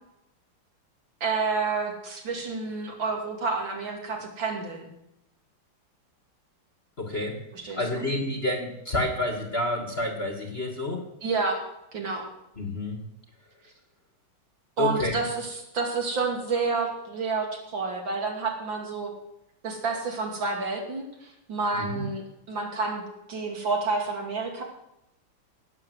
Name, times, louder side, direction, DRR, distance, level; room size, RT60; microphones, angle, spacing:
voice 1, 1.2-4.9 7.5-8.0 11.2-11.6 11.9-12.3 14.8-19.1 19.6-23.0 23.3-24.6, right 4 dB, 60° right, 2 dB, 3.3 m, -29 dB
voice 2, 7.0-7.4 7.7-11.1 12.6-13.0 14.8-15.2 21.7-22.0, left 1 dB, 30° left, 3 dB, 1.8 m, -29 dB
18.0 x 7.2 x 7.9 m, 0.84 s
omnidirectional pair, 2.4 m